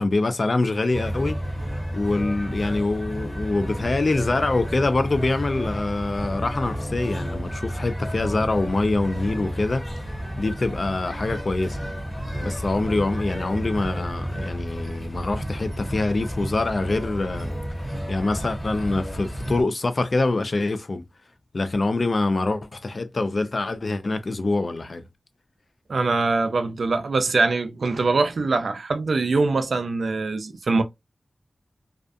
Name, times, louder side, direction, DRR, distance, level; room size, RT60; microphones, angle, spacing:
voice 1, 0.0-1.4 1.9-9.9 10.4-11.8 12.4-17.5 18.1-21.0 21.5-25.0, left 2 dB, 55° left, 0.4 m, -25 dB
sound 1, 0.9-19.6, equal, 20° left, 1.4 m, -31 dB
voice 2, 25.9-30.8, right 3 dB, 80° right, 0.4 m, -23 dB
2.4 x 2.3 x 2.4 m
cardioid pair, 55°, 0 cm